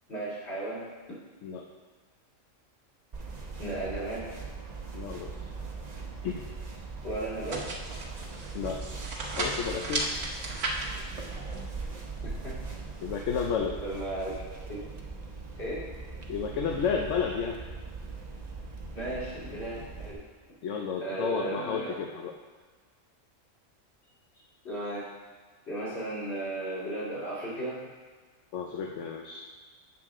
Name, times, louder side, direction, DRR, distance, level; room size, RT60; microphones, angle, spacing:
voice 1, 0.1-1.2 3.6-4.3 7.0-7.6 12.2-12.6 13.8-14.4 14.7-14.8 15.6-15.9 18.9-20.2 21.0-22.0 24.6-25.1 25.7-27.8, right 2 dB, 55° left, -7 dB, 2.9 m, -35 dB
sound 1, 3.1-20.1, right 4 dB, 35° right, 0.9 m, -40 dB
voice 2, 4.9-5.3 6.2-6.4 8.5-8.9 9.4-10.1 13.0-13.8 16.3-17.6 20.6-22.3 28.5-29.5, left 6 dB, 70° left, 1 dB, 1.0 m, -31 dB
sound 2, 7.5-13.2, right 2 dB, 55° right, 1.3 m, -36 dB
8.6 x 6.5 x 3.6 m, 1.5 s
omnidirectional pair, 1.3 m